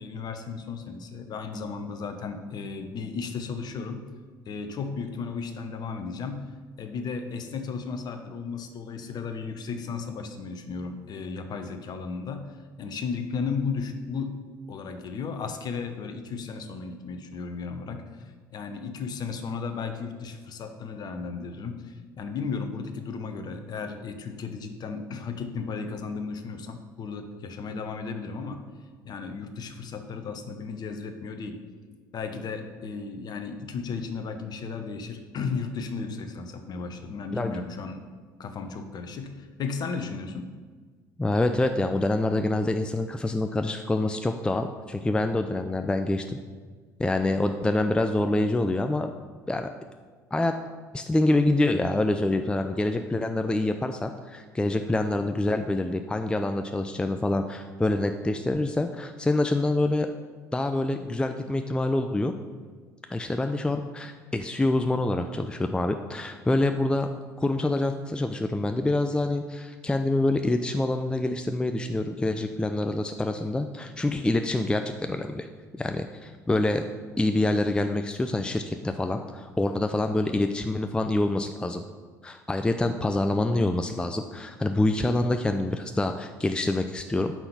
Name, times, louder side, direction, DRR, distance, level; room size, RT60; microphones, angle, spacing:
voice 1, 0.0-4.0 4.5-6.5 6.8-14.4 14.7-28.6 29.0-31.6 32.1-38.0 38.4-40.5, left 5 dB, 45° left, 7 dB, 1.0 m, -34 dB
voice 2, 41.2-46.4 47.0-49.1 49.5-49.7 50.3-50.5 50.9-60.1 60.5-62.3 63.1-67.1 67.4-75.5 75.7-76.8 77.2-81.8 82.2-87.3, left 2 dB, 10° left, 6 dB, 0.5 m, -26 dB
6.0 x 5.7 x 6.9 m, 1.5 s
figure-of-eight pair, 60°, 10 cm